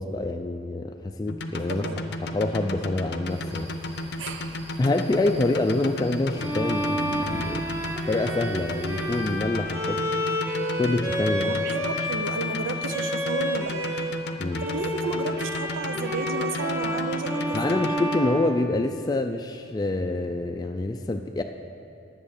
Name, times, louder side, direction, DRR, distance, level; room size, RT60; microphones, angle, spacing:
voice 1, 0.0-1.8 2.2-3.7 4.8-7.8 8.1-10.0 10.7-11.5 14.4-14.6 17.5-21.4, left 2 dB, 20° left, 4 dB, 0.3 m, -26 dB
sound 1, 1.3-18.2, left 1 dB, 60° left, 0.6 m, -33 dB
voice 2, 1.7-2.0 4.2-4.6 11.4-14.1 14.6-18.0, right 4 dB, 85° right, 9 dB, 0.6 m, -33 dB
sound 2, 3.3-9.4, equal, 35° right, 2.2 m, -43 dB
Bowed string instrument, 6.4-14.2 14.5-19.3, equal, 10° right, 0.7 m, -30 dB
10.0 x 8.1 x 6.5 m, 2.5 s
head